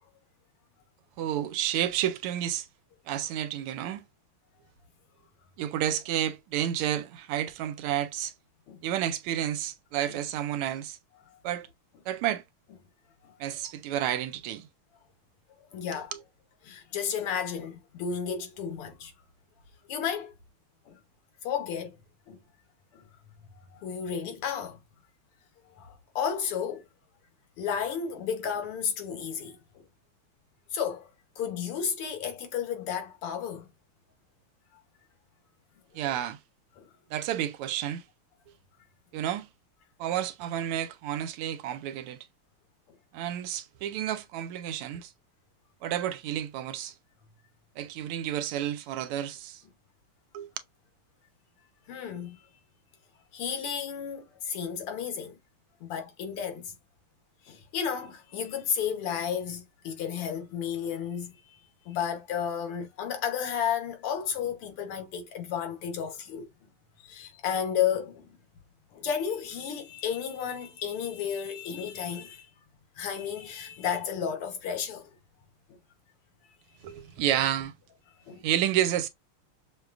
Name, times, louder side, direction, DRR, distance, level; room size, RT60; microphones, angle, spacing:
voice 1, 1.2-2.7 3.1-4.0 5.6-8.3 8.8-11.0 11.4-11.7 12.1-12.4 13.4-14.7 15.9-16.2 35.9-36.4 37.1-38.0 39.1-39.5 40.0-42.2 43.1-45.1 45.8-46.9 47.8-49.6 50.3-50.5 76.8-77.7 78.4-79.1, right 11 dB, 85° right, 1.5 m, -30 dB
voice 2, 15.7-16.1 16.6-19.1 19.9-20.3 20.9-21.0 21.4-22.0 22.3-22.4 22.9-23.0 23.7-24.8 25.8-26.8 27.6-29.8 30.7-31.1 31.4-33.7 36.1-36.2 36.8-36.9 51.9-52.4 53.3-55.4 55.8-56.7 57.5-61.6 61.9-66.7 67.0-68.3 68.9-72.5 73.0-75.1 75.7-75.8 78.3-78.4, left 8 dB, 85° left, 1.9 m, -33 dB
6.5 x 2.2 x 2.4 m
omnidirectional pair, 2.4 m